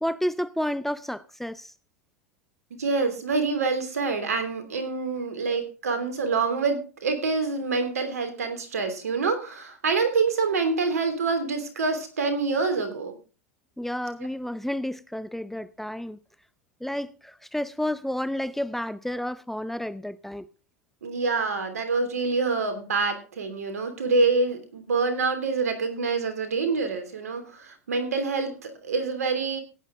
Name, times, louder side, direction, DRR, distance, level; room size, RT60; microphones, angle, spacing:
voice 1, 0.0-1.7 13.8-16.2 16.8-20.5, left 1 dB, 5° left, 0.5 m, -31 dB
voice 2, 2.8-13.2 21.0-29.6, right 4 dB, 80° right, 3.0 m, -26 dB
16.0 x 9.7 x 3.7 m
hypercardioid pair, 105°, 8 cm